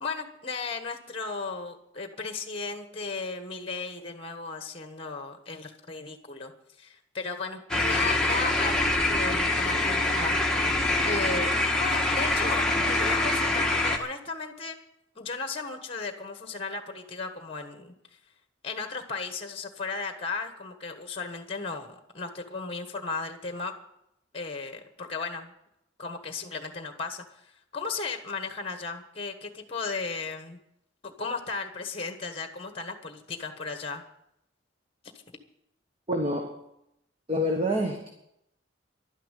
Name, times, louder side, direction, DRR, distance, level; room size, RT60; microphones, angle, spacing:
voice 1, 0.0-6.5 6.8-10.4 11.0-14.8 15.1-17.9 18.6-23.7 24.3-25.5 26.0-27.4 27.7-30.6 31.0-34.0, left 4 dB, 30° left, 7 dB, 1.3 m, -35 dB
sound 1, 7.7-14.0, left 2 dB, 5° left, 1.5 m, -25 dB
voice 2, 36.1-36.6 37.3-38.1, equal, 30° right, 2 dB, 1.4 m, -27 dB
12.0 x 10.0 x 9.1 m, 0.79 s
head